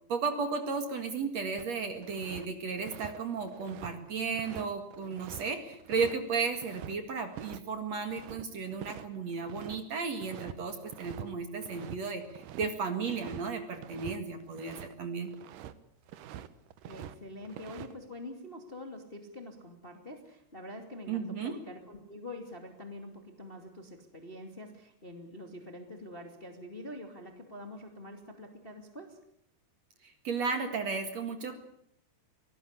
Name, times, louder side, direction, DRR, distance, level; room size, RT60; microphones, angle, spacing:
voice 1, 0.1-15.3 21.1-21.6 30.0-31.5, right 5 dB, 50° right, 7 dB, 2.7 m, -34 dB
sound 1, 1.6-2.5 2.7-7.0 7.3-7.6 7.9-9.8 10.2-10.6 10.8-11.3 11.6-14.9 15.3-15.7 16.1-17.2 17.4-17.9, right 11 dB, 70° right, 2.2 m, -46 dB
voice 2, 16.8-29.2, left 1 dB, 20° left, 5 dB, 2.0 m, -45 dB
24.0 x 18.5 x 8.2 m, 0.71 s
omnidirectional pair, 4.7 m